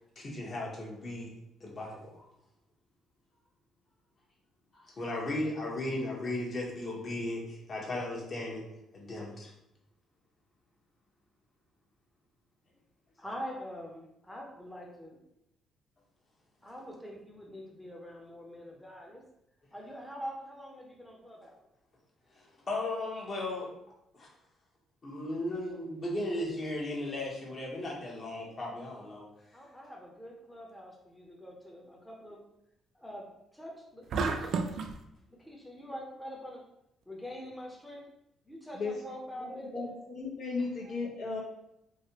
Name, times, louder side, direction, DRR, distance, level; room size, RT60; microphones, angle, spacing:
voice 1, 0.2-1.3 1.6-2.2 4.7-8.6 8.9-9.5 22.3-23.7 24.1-24.3 25.0-29.3, left 1 dB, 45° left, -2 dB, 1.1 m, -36 dB
voice 2, 13.2-15.2 16.6-19.2 19.7-21.7 29.5-32.4 32.9-34.8 35.3-36.6 37.1-38.0 38.5-39.9, equal, 5° left, -2 dB, 0.7 m, -45 dB
sound 1, 34.1-35.0, right 4 dB, 65° right, 0.3 m, -31 dB
voice 3, 39.4-41.4, left 4 dB, 75° left, -4 dB, 1.1 m, -35 dB
3.1 x 2.8 x 2.9 m, 0.83 s
supercardioid pair, 75°, 0 cm